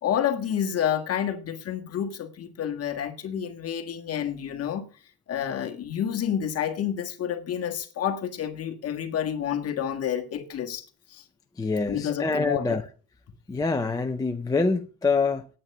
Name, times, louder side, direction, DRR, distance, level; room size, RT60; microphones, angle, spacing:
voice 1, 0.0-4.8 5.3-10.8 11.1-11.2 11.9-12.8, left 9 dB, 35° left, 1.6 m, -29 dB
voice 2, 11.6-12.8 13.5-15.5, left 4 dB, 10° left, 0.5 m, -25 dB
9.4 x 8.9 x 6.5 m
cardioid pair, 170°, 40 cm